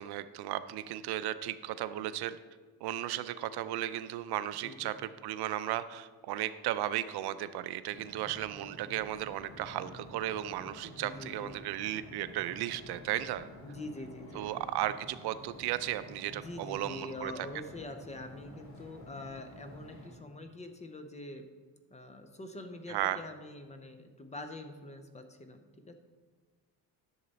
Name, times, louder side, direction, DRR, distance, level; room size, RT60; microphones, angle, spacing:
voice 1, 0.0-2.4 2.8-13.5 14.3-17.3 22.9-23.2, right 13 dB, 75° right, 13 dB, 0.5 m, -35 dB
voice 2, 4.6-4.9 11.0-11.5 13.6-14.5 16.3-21.5 21.9-25.9, left 2 dB, 20° left, 7 dB, 0.5 m, -45 dB
sound 1, 7.9-20.1, left 1 dB, 45° left, 3.1 m, -51 dB
11.0 x 6.5 x 4.0 m, 1.5 s
cardioid pair, 160°, 39 cm